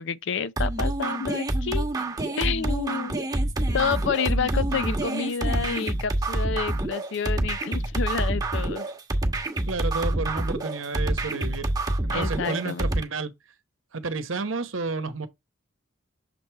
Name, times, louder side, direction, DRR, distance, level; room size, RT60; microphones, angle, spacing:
voice 1, 0.0-1.9 2.4-3.3 3.7-8.9 12.1-12.9, left 6 dB, 65° left, 0.5 m, -29 dB
sound 1, 0.6-13.0, right 1 dB, 20° right, 1.1 m, -27 dB
voice 2, 9.7-11.7 12.0-13.3 13.9-15.3, right 3 dB, 75° right, 0.9 m, -31 dB
6.7 x 3.3 x 4.5 m
head